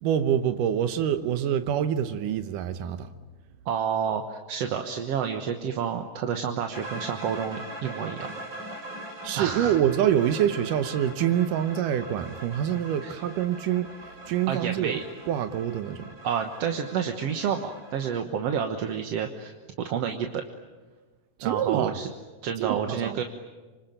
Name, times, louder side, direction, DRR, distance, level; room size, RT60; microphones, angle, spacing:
voice 1, 0.0-3.1 9.2-13.9 14.3-16.2 21.4-22.0 22.6-23.2, right 10 dB, 90° right, 9 dB, 2.6 m, -26 dB
voice 2, 3.7-8.3 9.4-9.8 13.0-13.2 14.5-15.0 16.2-20.4 21.4-22.1 22.4-23.2, right 7 dB, 60° right, 5 dB, 2.1 m, -29 dB
sound 1, 6.7-18.1, right 1 dB, 35° right, 4.6 m, -41 dB
26.5 x 25.0 x 8.9 m, 1.3 s
omnidirectional pair, 3.6 m